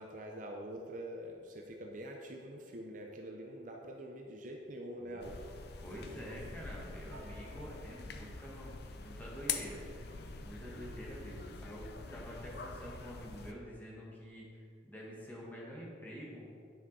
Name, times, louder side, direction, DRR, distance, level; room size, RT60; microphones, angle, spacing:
voice 1, 0.0-5.4, right 1 dB, 40° right, 1 dB, 0.6 m, -45 dB
sound 1, 5.2-13.5, left 5 dB, 55° left, 0.6 m, -44 dB
voice 2, 5.8-10.1 10.4-11.8 12.1-16.4, equal, 10° left, -5 dB, 1.6 m, -48 dB
Piano, 5.9-12.1, left 1 dB, 70° right, 1.0 m, -57 dB
10.0 x 6.0 x 4.0 m, 2.4 s
head